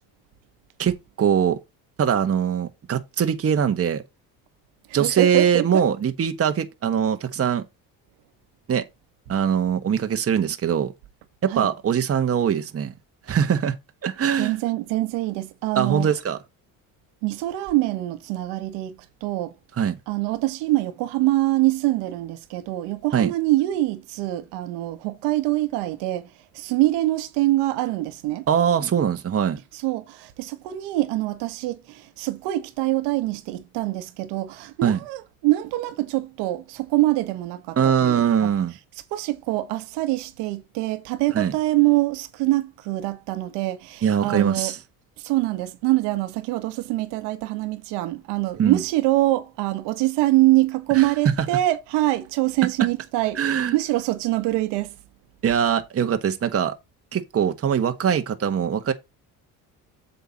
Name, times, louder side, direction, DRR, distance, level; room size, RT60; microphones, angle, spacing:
voice 1, 0.8-1.6 2.0-4.0 4.9-7.6 8.7-8.8 9.3-10.9 11.4-12.9 13.3-13.7 14.0-14.6 15.7-16.4 19.8-20.0 23.1-23.3 28.5-29.6 34.8-35.0 37.8-38.7 41.3-41.5 44.0-44.8 48.6-48.8 50.9-51.1 53.3-53.8 55.4-56.7 57.1-58.9, right 8 dB, 35° right, 1.3 m, -22 dB
voice 2, 4.9-5.8 11.5-11.7 14.4-16.1 17.2-19.0 19.2-19.5 20.1-26.3 26.5-28.5 29.7-38.5 39.1-44.7 45.2-53.4 53.7-54.9, right 17 dB, 85° right, 1.6 m, -24 dB
8.1 x 6.9 x 4.1 m
supercardioid pair, 95°, 40 cm